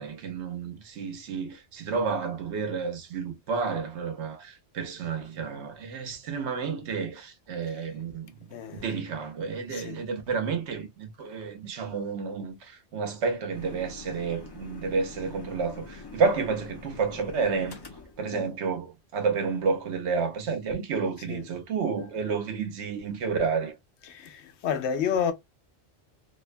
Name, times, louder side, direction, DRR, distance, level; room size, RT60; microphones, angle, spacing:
voice 1, 0.0-8.4 8.8-17.8 18.2-23.8, right 5 dB, 85° right, 1.0 m, -30 dB
voice 2, 8.5-8.9 9.7-10.0 21.3-21.4 24.1-25.3, left 7 dB, 85° left, 0.9 m, -30 dB
sound 1, 13.5-18.6, left 3 dB, 35° left, 0.4 m, -44 dB
2.7 x 2.1 x 2.4 m
omnidirectional pair, 1.1 m